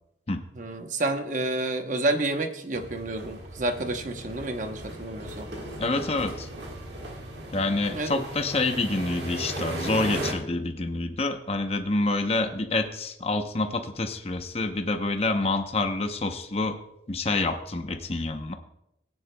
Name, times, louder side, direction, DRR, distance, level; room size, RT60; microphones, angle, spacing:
voice 1, 0.6-5.5 7.9-8.2, right 2 dB, 45° right, 6 dB, 0.9 m, -29 dB
sound 1, 2.7-10.3, right 1 dB, 70° right, 1.6 m, -37 dB
voice 2, 5.8-6.5 7.5-16.8 17.1-18.5, left 2 dB, 35° left, 6 dB, 0.8 m, -27 dB
18.5 x 9.8 x 2.2 m, 0.83 s
head